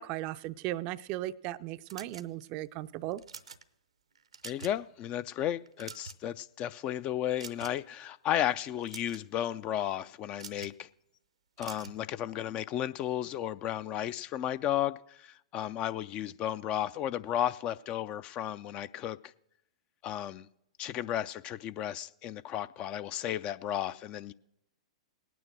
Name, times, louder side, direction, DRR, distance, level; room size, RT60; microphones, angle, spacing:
voice 1, 0.0-3.2, right 15 dB, 40° right, 14 dB, 0.4 m, -37 dB
sound 1, 1.9-2.6 3.1-3.6 4.2-4.8 5.2-5.3 5.7-6.4 7.4-7.9 8.7-9.3 10.4-10.8 11.6-12.0, right 6 dB, 80° right, 0.7 m, -46 dB
voice 2, 4.4-10.9 11.6-19.3 20.0-20.5 20.8-24.3, left 11 dB, 35° left, 15 dB, 0.4 m, -34 dB
18.0 x 9.2 x 6.2 m, 0.81 s
figure-of-eight pair, 105°, 3 cm